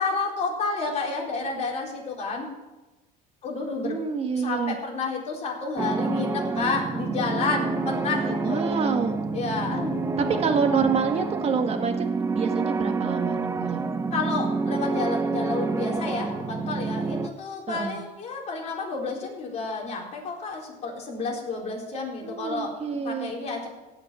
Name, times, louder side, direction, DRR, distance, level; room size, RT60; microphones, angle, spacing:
voice 1, 0.0-2.5 3.4-4.0 4.3-8.6 9.3-10.0 14.1-23.7, left 4 dB, 35° left, -1 dB, 4.1 m, -30 dB
voice 2, 3.8-4.8 8.4-9.2 10.2-13.8 17.7-18.0 22.2-23.3, right 6 dB, 35° right, 6 dB, 1.7 m, -27 dB
sound 1, 5.8-17.3, right 3 dB, 15° right, 0.7 m, -28 dB
16.5 x 5.9 x 9.0 m, 1.1 s
cardioid pair, 130°, 19 cm